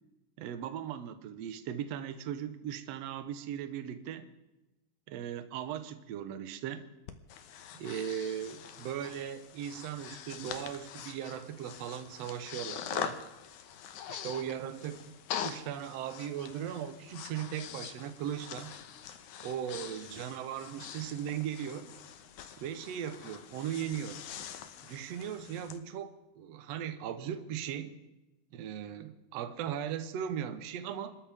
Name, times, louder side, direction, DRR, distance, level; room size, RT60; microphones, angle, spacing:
voice 1, 0.4-4.3 5.1-6.9 7.7-13.2 14.1-15.2 15.4-18.7 19.4-22.0 22.6-24.2 24.8-27.9 28.5-31.2, right 9 dB, 70° right, 10 dB, 1.6 m, -38 dB
Breathing, 7.1-25.8, left 9 dB, 70° left, 2.1 m, -44 dB
27.0 x 13.5 x 3.6 m, 0.99 s
omnidirectional pair, 4.2 m